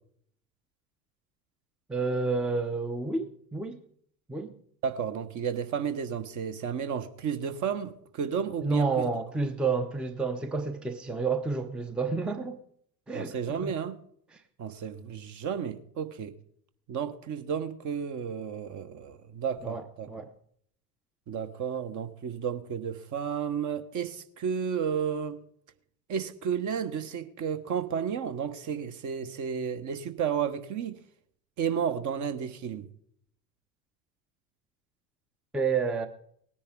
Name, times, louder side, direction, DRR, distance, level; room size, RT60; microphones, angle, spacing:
voice 1, 1.9-3.8 4.3-4.5 8.6-12.6 13.1-13.4 13.6-13.7 19.6-20.3 35.5-36.1, right 4 dB, ahead, 0.7 m, -30 dB
voice 2, 4.8-9.0 13.1-14.0 14.6-16.4 16.9-20.1 21.3-25.4 26.1-31.0 31.6-32.9, right 7 dB, 35° right, 1.2 m, -32 dB
18.5 x 10.0 x 3.6 m
figure-of-eight pair, 75°, 50 cm